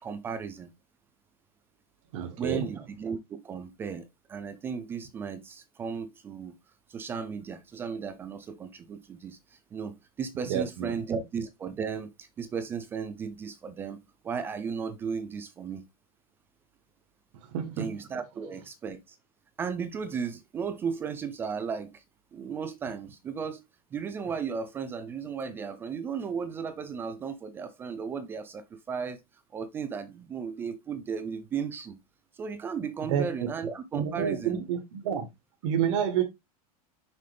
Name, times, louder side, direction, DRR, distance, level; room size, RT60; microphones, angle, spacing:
voice 1, 0.0-0.7 2.4-6.6 6.9-15.8 17.8-19.2 19.6-22.0 22.3-23.6 23.9-29.2 29.5-32.0 32.3-34.6, right 6 dB, 10° right, 0.4 m, -35 dB
voice 2, 2.1-2.7 10.5-10.9 17.5-17.9 33.1-33.5 33.9-35.3 35.6-36.2, right 8 dB, 50° right, 1.3 m, -29 dB
6.6 x 5.3 x 3.3 m
supercardioid pair, 175°, 19 cm